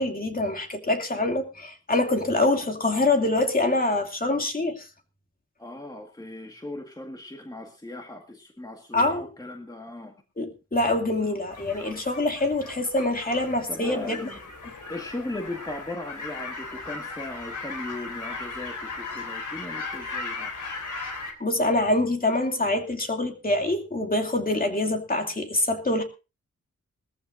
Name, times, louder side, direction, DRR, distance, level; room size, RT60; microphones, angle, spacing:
voice 1, 0.0-4.9 8.9-9.2 10.4-14.2 21.4-26.0, left 2 dB, 30° left, 2.6 m, -25 dB
voice 2, 5.6-10.1 11.2-11.4 13.7-14.4 14.9-20.5, left 1 dB, 15° left, 1.8 m, -38 dB
sound 1, 11.5-21.3, left 3 dB, 80° left, 3.5 m, -37 dB
21.0 x 14.5 x 2.6 m
wide cardioid pair, 100°, 30 cm